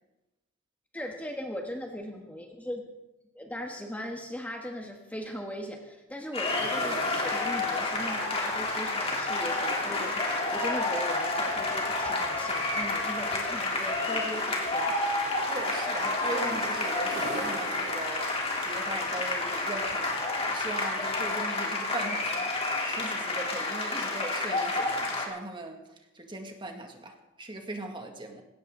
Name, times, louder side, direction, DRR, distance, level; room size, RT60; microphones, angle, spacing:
voice 1, 0.9-2.9 3.3-14.9, equal, 10° left, 2 dB, 1.4 m, -39 dB
sound 1, 6.3-25.2, left 2 dB, 30° left, 3.3 m, -30 dB
sound 2, 6.5-21.4, right 2 dB, 55° right, 2.5 m, -44 dB
voice 2, 15.5-18.3 18.6-22.5 22.8-25.8 26.1-28.4, right 2 dB, 25° right, 3 dB, 2.0 m, -39 dB
19.5 x 17.5 x 3.9 m, 0.98 s
head